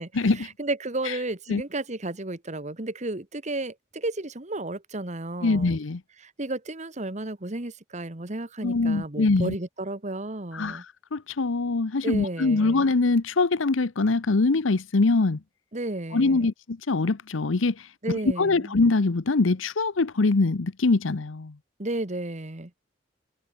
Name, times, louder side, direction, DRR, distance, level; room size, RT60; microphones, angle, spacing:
voice 1, 0.0-5.8 6.2-10.8 12.0-12.9 15.7-16.5 18.0-18.7 21.8-22.7, right 2 dB, 35° right, 1.7 m, -33 dB
voice 2, 5.4-6.0 8.6-9.5 10.5-10.8 11.1-15.4 16.1-17.9 18.4-21.5, left 3 dB, 85° left, 0.8 m, -23 dB
head